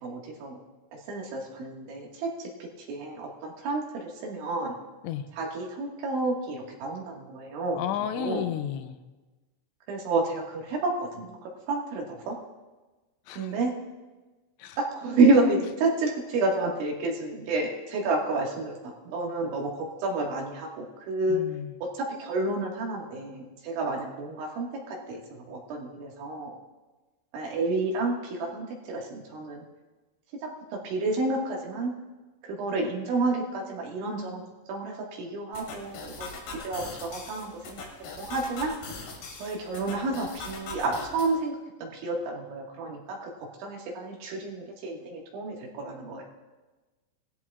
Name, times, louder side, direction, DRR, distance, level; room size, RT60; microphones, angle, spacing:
voice 1, 0.0-0.6 1.1-2.5 2.9-4.8 5.4-7.8 8.2-8.4 9.9-11.4 11.7-12.4 13.4-13.7 14.8-21.4 22.0-26.6 27.3-29.6 30.4-30.5 30.8-31.9 32.4-34.4 34.7-36.2 36.5-37.8 38.2-38.7 39.4-43.3 43.6-46.2, right 3 dB, 80° right, -1 dB, 4.2 m, -29 dB
voice 2, 7.7-9.0 13.3-13.6 14.6-14.8 21.3-21.8, left 9 dB, 90° left, 9 dB, 3.1 m, -33 dB
sound 1, 35.5-41.3, left 4 dB, 60° left, 3.7 m, -41 dB
19.5 x 13.5 x 2.4 m, 1.2 s
omnidirectional pair, 5.3 m